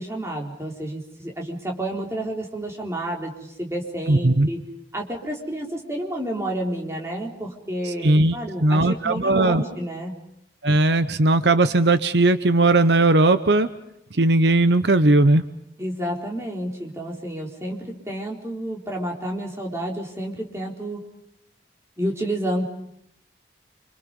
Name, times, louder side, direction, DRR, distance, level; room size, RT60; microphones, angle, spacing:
voice 1, 0.0-4.6 4.9-10.2 15.8-21.0 22.0-22.6, right 1 dB, 15° right, -1 dB, 4.1 m, -30 dB
voice 2, 4.1-4.5 7.8-9.6 10.6-13.7 14.1-15.4, right 2 dB, 75° right, 11 dB, 1.0 m, -18 dB
28.5 x 26.5 x 5.4 m, 0.79 s
head